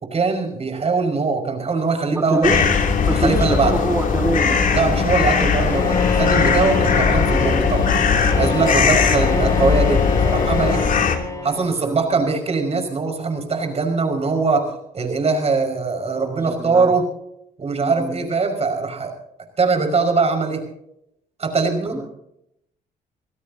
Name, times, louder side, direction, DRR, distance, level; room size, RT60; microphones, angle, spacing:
voice 1, 0.0-2.6 3.1-3.7 4.7-7.9 8.4-10.8 11.4-14.7 14.9-17.0 17.6-19.1 19.6-20.6 21.4-22.0, right 4 dB, 40° right, 4 dB, 5.6 m, -21 dB
voice 2, 2.1-2.6 3.0-4.6 9.1-9.8 11.2-12.2 16.2-16.9 17.8-18.3 21.9-22.1, right 2 dB, 15° right, 2 dB, 2.0 m, -27 dB
sound 1, 2.4-11.2, left 5 dB, 55° left, 3.0 m, -19 dB
Bowed string instrument, 5.6-11.9, left 5 dB, 20° left, 2.5 m, -27 dB
26.0 x 16.5 x 2.8 m, 0.78 s
cardioid pair, 85°, 16 cm